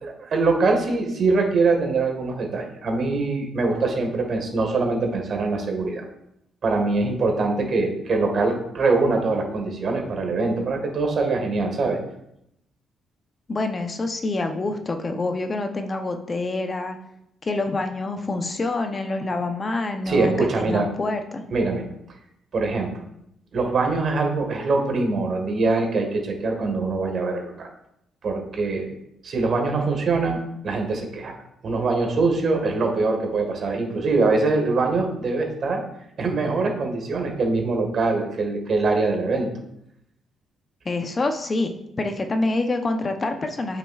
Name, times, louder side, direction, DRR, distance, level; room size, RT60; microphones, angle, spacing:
voice 1, 0.0-6.0 6.6-12.0 20.1-20.9 21.5-21.8 22.5-22.9 23.5-27.7 28.2-28.9 29.2-31.3 31.6-35.8 36.2-39.5, right 3 dB, 55° right, 2 dB, 1.6 m, -23 dB
voice 2, 13.5-17.0 17.5-21.4 40.9-43.8, left 2 dB, 30° left, 6 dB, 0.7 m, -26 dB
8.7 x 5.7 x 2.4 m, 0.79 s
cardioid pair, 90°, 0 cm